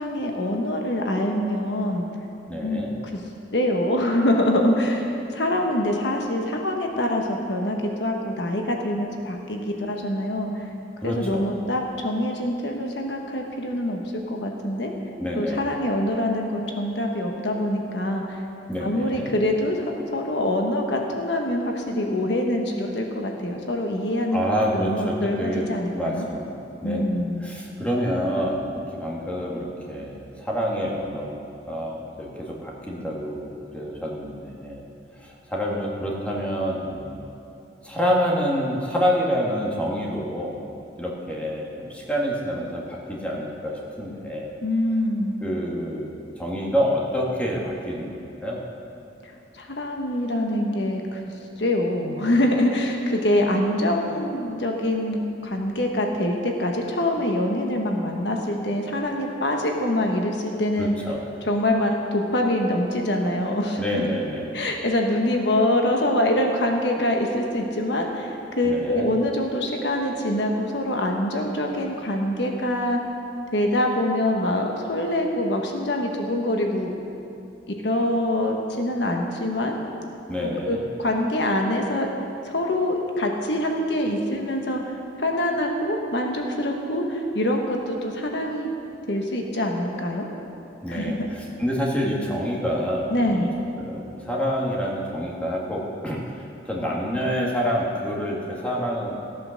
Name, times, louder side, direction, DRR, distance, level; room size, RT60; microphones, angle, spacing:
voice 1, 0.0-2.1 2.6-3.2 3.5-10.6 11.0-14.9 15.3-18.4 18.8-24.4 24.7-26.2 26.8-27.5 44.6-45.4 49.2-51.2 51.6-60.9 61.4-63.8 64.5-73.0 73.5-76.9 77.8-79.8 80.4-82.1 82.4-88.7 89.1-90.3 90.9-91.3 93.1-93.6, left 1 dB, 75° left, 2 dB, 1.3 m, -25 dB
voice 2, 2.5-2.9 11.0-11.4 15.2-15.7 18.7-19.3 24.3-26.5 26.8-34.8 35.2-37.3 37.8-40.6 41.0-44.5 45.4-48.6 60.8-61.2 63.8-64.5 68.6-69.1 80.3-80.8 90.8-93.5 93.8-96.4 96.7-99.2, equal, 10° left, -3 dB, 1.8 m, -27 dB
15.0 x 8.5 x 6.5 m, 2.7 s
head